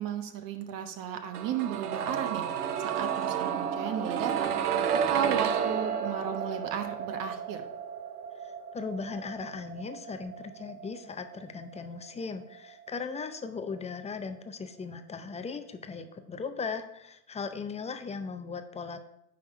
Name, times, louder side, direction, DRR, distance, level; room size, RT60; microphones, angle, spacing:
voice 1, 0.0-2.4 3.0-4.6 5.1-7.6, right 8 dB, 45° right, 7 dB, 1.1 m, -34 dB
sound 1, 1.3-13.2 13.4-13.5, right 8 dB, 90° right, 0.7 m, -32 dB
voice 2, 8.4-19.0, left 5 dB, 15° left, 8 dB, 0.5 m, -38 dB
10.0 x 3.5 x 4.5 m, 0.80 s
hypercardioid pair, 90°, 45 cm